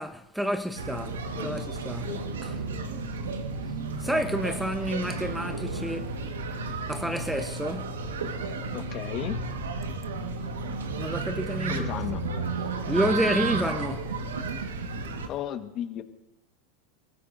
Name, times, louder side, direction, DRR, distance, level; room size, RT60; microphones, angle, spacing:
voice 1, 0.0-2.2 2.4-2.5 4.0-6.1 6.9-8.0 11.0-12.0 12.9-14.2, equal, 5° right, 1.0 m, -30 dB
sound 1, 0.8-15.3, right 3 dB, 90° right, 1.5 m, -33 dB
voice 2, 1.4-1.7 2.0-2.3 2.7-2.9 8.7-9.4 11.7-12.2 15.3-16.0, left 11 dB, 45° left, 1.5 m, -35 dB
30.0 x 14.5 x 2.7 m
hypercardioid pair, 105°, 0 cm